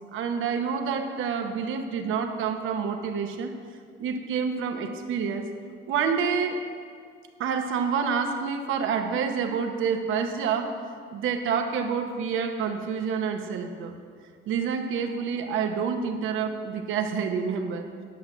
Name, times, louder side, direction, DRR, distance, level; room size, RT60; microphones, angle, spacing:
voice 1, 0.1-3.5 4.0-5.5 5.9-6.6 7.4-10.8 11.1-13.9 14.5-17.9, right 6 dB, 85° right, 5 dB, 0.9 m, -28 dB
10.5 x 5.9 x 7.7 m, 2.1 s
cardioid pair, 90°, 20 cm